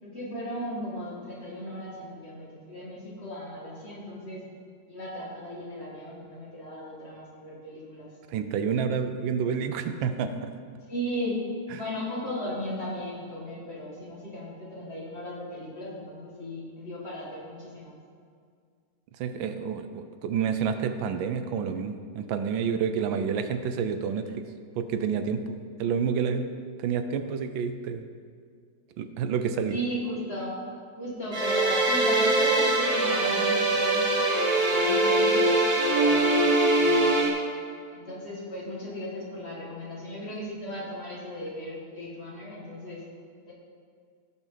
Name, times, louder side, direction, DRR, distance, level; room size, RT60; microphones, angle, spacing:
voice 1, 0.0-4.4 4.9-8.1 10.9-11.4 11.7-17.9 29.7-30.5 31.0-34.0 34.6-35.5 35.9-36.4 36.7-37.4 37.9-43.0 43.5-43.6, equal, 35° left, -5 dB, 2.3 m, -36 dB
voice 2, 8.3-10.5 11.7-11.8 19.2-24.4 24.7-25.4 25.8-26.5 26.8-28.1 29.0-29.8, right 6 dB, 85° right, 9 dB, 1.4 m, -29 dB
sound 1, 31.3-37.3, right 2 dB, 25° right, 1.1 m, -22 dB
16.5 x 6.1 x 4.0 m, 2.1 s
omnidirectional pair, 2.1 m